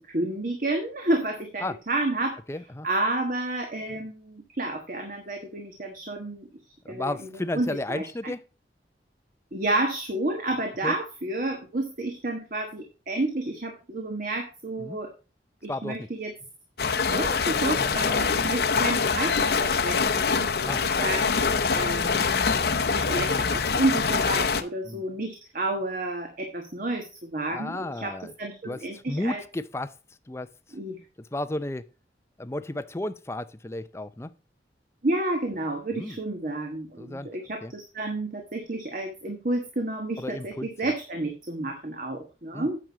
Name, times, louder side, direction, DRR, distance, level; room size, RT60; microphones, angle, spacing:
voice 1, 0.1-2.4 2.8-6.5 6.9-7.1 7.5-8.3 9.5-15.1 15.6-16.3 17.1-22.3 22.9-29.4 30.7-31.0 35.0-42.8, right 2 dB, 50° right, 1.4 m, -30 dB
voice 2, 2.5-2.9 6.8-8.4 10.8-10.9 14.8-15.0 15.7-16.1 17.8-18.2 20.6-20.8 24.8-25.0 27.5-28.3 28.6-29.9 30.3-30.5 31.3-31.9 32.4-34.3 35.9-36.2 37.0-37.3 37.6-37.7 40.2-40.9 42.5-42.7, left 1 dB, 15° left, 0.5 m, -33 dB
sound 1, 16.8-24.6, left 5 dB, 60° left, 0.8 m, -24 dB
9.1 x 6.1 x 5.0 m
head